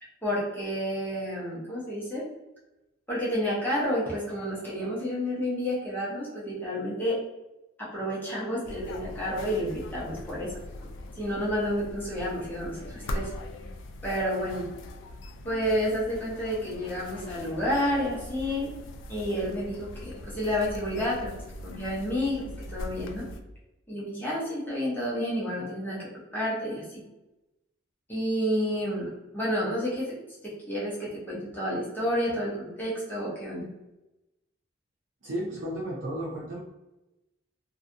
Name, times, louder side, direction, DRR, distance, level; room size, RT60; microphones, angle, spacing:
voice 1, 0.2-2.2 3.1-7.2 7.8-10.5 11.2-13.3 14.0-14.6 15.4-18.7 19.1-21.3 21.6-22.4 22.7-23.3 23.9-27.0 28.1-30.1 30.4-33.7, equal, 10° left, -7 dB, 0.7 m, -30 dB
sound 1, 8.6-23.4, left 1 dB, 70° left, 0.3 m, -41 dB
voice 2, 35.2-36.6, right 1 dB, 65° right, -4 dB, 0.5 m, -33 dB
2.6 x 2.3 x 2.5 m, 0.97 s
head